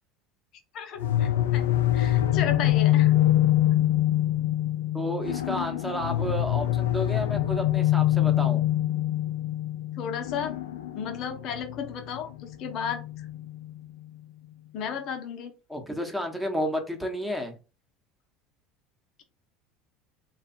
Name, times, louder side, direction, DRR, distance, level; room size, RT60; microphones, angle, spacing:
voice 1, 0.7-3.1 10.0-10.6 10.9-13.3 14.7-15.5, left 7 dB, 55° left, 6 dB, 0.9 m, -34 dB
sound 1, 1.0-13.8, left 13 dB, 90° left, 0.3 m, -25 dB
voice 2, 4.9-8.6 15.7-17.5, equal, ahead, 3 dB, 1.1 m, -31 dB
3.3 x 2.3 x 4.2 m, 0.32 s
hypercardioid pair, 90°, 0 cm